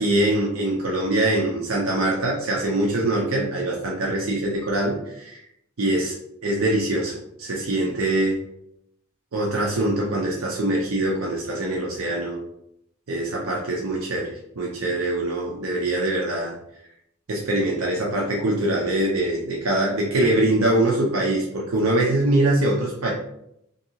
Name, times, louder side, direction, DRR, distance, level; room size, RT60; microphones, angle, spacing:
voice 1, 0.0-5.4 5.8-6.1 6.4-8.4 9.3-12.4 13.1-16.5 17.3-23.1, right 1 dB, 65° right, -2 dB, 0.6 m, -23 dB
2.6 x 2.6 x 2.8 m, 0.77 s
head